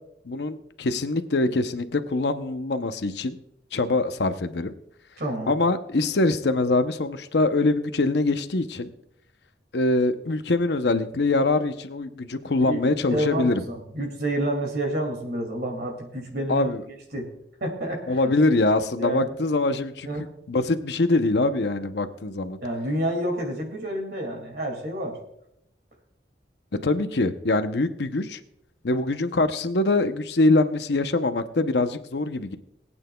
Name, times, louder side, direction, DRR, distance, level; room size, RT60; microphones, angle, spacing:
voice 1, 0.3-3.4 3.7-4.7 5.5-8.9 9.7-13.6 16.5-16.8 18.1-20.1 20.5-22.6 26.8-28.4 28.8-32.6, left 2 dB, 70° left, 9 dB, 0.7 m, -23 dB
voice 2, 5.2-5.5 12.7-16.7 17.1-17.3 17.6-18.3 19.0-19.3 20.0-20.3 22.6-25.2, right 1 dB, 60° right, 2 dB, 2.3 m, -29 dB
21.5 x 8.8 x 2.3 m, 0.76 s
head